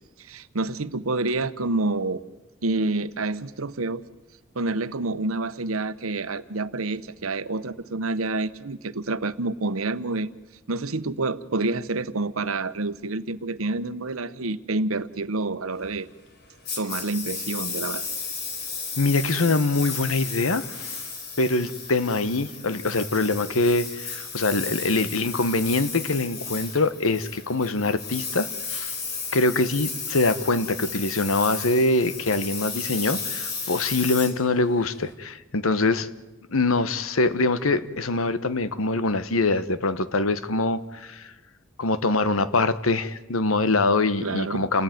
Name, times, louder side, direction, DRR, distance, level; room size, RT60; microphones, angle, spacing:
voice 1, 0.2-2.2 2.6-4.0 4.5-10.3 10.7-16.1 16.8-18.1 44.2-44.6, right 2 dB, 90° right, 13 dB, 1.1 m, -28 dB
Engine, 16.7-35.1, left 4 dB, 50° left, 4.3 m, -34 dB
voice 2, 19.0-21.0 21.4-28.9 29.3-36.1 36.5-41.3 41.8-44.8, left 2 dB, 85° left, 14 dB, 1.2 m, -24 dB
29.0 x 19.0 x 9.4 m, 1.1 s
head